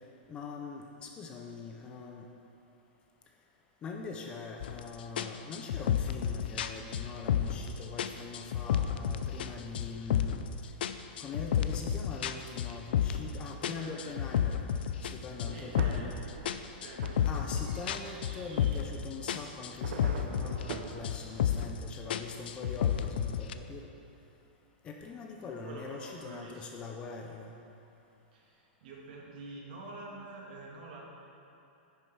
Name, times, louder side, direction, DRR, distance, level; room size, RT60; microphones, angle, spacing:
voice 1, 0.3-2.3 3.8-10.5 11.2-14.6 15.1-16.2 17.2-23.9 24.8-27.5, left 4 dB, 15° left, 2 dB, 0.5 m, -42 dB
sound 1, 4.6-4.8 5.2-7.7 8.0-9.5 9.7-10.5 10.8-13.3 13.6-16.1 16.5-19.0 19.3-20.8 21.0-21.8 22.1-23.5, left 9 dB, 70° left, 0.4 m, -31 dB
voice 2, 13.5-14.1 15.4-16.3 16.8-17.1 25.4-26.7 28.3-31.0, right 2 dB, 55° right, -2 dB, 2.0 m, -47 dB
sound 2, 15.5-21.1, right 6 dB, 80° right, 0.7 m, -44 dB
10.0 x 6.8 x 4.6 m, 2.7 s
supercardioid pair, 165°, 6 cm